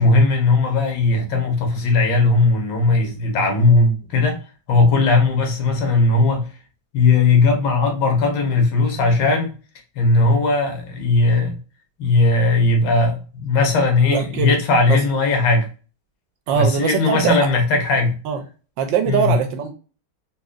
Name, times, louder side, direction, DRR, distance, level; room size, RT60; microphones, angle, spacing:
voice 1, 0.0-4.4 4.7-6.4 6.9-9.5 10.0-11.6 12.0-15.7 16.5-18.2 19.1-19.3, left 3 dB, 75° left, 1.6 m, -17 dB
voice 2, 14.1-14.6 14.9-15.0 16.5-17.5 18.2-18.4 18.8-19.8, right 7 dB, 75° right, 1.2 m, -21 dB
4.1 x 2.7 x 2.3 m
omnidirectional pair, 2.2 m